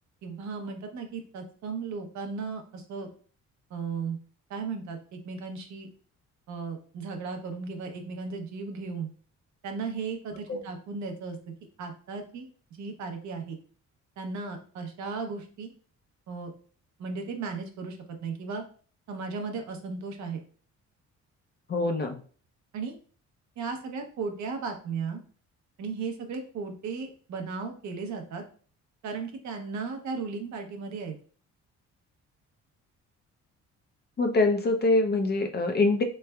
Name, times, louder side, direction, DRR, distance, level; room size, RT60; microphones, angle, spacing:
voice 1, 0.2-3.1 3.7-4.2 4.5-5.9 6.5-9.1 9.6-11.4 11.8-13.6 14.2-15.7 16.3-16.5 17.0-18.6 19.1-20.4 22.7-23.0 23.6-25.2 25.8-28.4 29.0-31.2, right 4 dB, 70° right, 5 dB, 0.7 m, -36 dB
voice 2, 21.7-22.2 34.2-36.0, left 2 dB, 35° left, 4 dB, 0.5 m, -24 dB
3.2 x 3.2 x 2.2 m, 0.42 s
cardioid pair, 90°, 30 cm